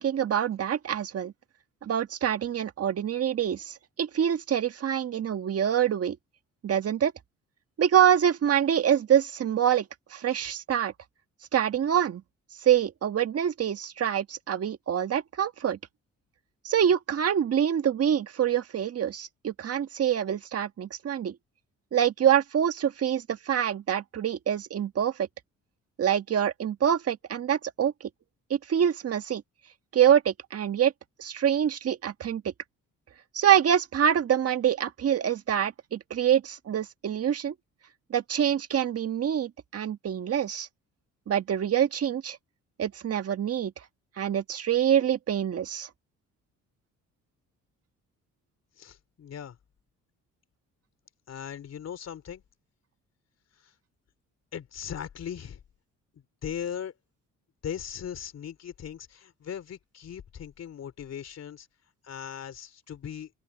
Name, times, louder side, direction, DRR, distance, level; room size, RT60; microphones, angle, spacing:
voice 1, 0.0-1.3 1.8-6.2 6.6-7.1 7.8-9.9 10.1-10.9 11.5-12.2 12.6-15.8 16.6-21.4 21.9-25.3 26.0-27.9 28.5-29.4 29.9-30.9 31.2-32.4 33.3-37.5 38.1-40.7 41.3-42.4 42.8-43.7 44.2-45.9, right 9 dB, 50° right, 1.6 m, -25 dB
voice 2, 48.8-49.6 51.3-52.4 53.6-53.7 54.5-55.6 56.1-56.9 57.6-61.7 62.0-63.3, left 8 dB, 55° left, 3.6 m, -39 dB
open air
cardioid pair, 90°, 30 cm